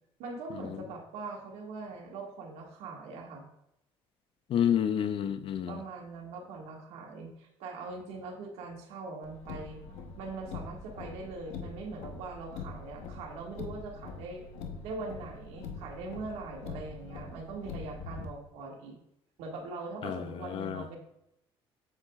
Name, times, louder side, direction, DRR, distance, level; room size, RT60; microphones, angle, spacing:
voice 1, 0.2-3.4 5.7-9.8 10.2-14.4 14.8-19.0 19.4-21.0, right 3 dB, 85° right, 0 dB, 1.8 m, -41 dB
voice 2, 4.5-5.7 20.0-20.8, left 9 dB, 55° left, 11 dB, 0.6 m, -29 dB
Car, 9.2-18.3, left 4 dB, 90° left, 1.0 m, -43 dB
8.1 x 7.7 x 2.4 m, 0.81 s
cardioid pair, 110°, 11 cm